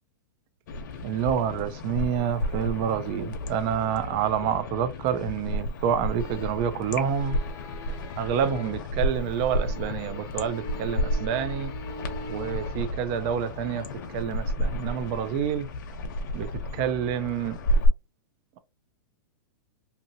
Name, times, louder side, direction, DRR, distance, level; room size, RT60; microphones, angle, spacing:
sound 1, 0.7-17.9, left 1 dB, 60° left, 0.8 m, -32 dB
voice 1, 1.0-7.4 8.2-11.7 12.3-13.9 14.1-15.7 16.3-17.6, right 8 dB, 35° right, 0.4 m, -28 dB
sound 2, 6.2-6.7 7.0-8.9 9.2-13.0 13.5-13.9, left 2 dB, 30° left, 0.7 m, -42 dB
2.7 x 2.7 x 2.7 m
hypercardioid pair, 150°, 11 cm